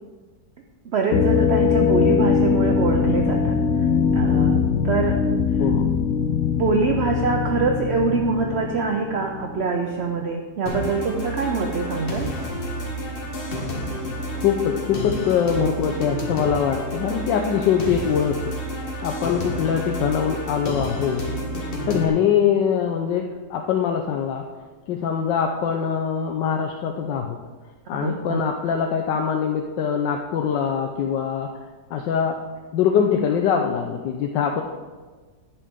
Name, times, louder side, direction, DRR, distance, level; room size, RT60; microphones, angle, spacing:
voice 1, 0.9-3.6 4.1-5.2 5.6-5.7 6.6-12.3 27.9-28.4, right 4 dB, 60° right, 3 dB, 0.7 m, -24 dB
sound 1, 1.1-9.8, left 6 dB, 65° left, 0.7 m, -21 dB
sound 2, 10.7-22.1, equal, 35° left, 1.4 m, -30 dB
voice 2, 14.4-18.5 19.0-21.3 21.9-24.4 24.9-27.4 27.9-31.5 31.9-32.4 32.7-34.6, left 7 dB, 85° left, 3 dB, 1.4 m, -23 dB
11.0 x 8.5 x 3.7 m, 1.4 s
omnidirectional pair, 1.9 m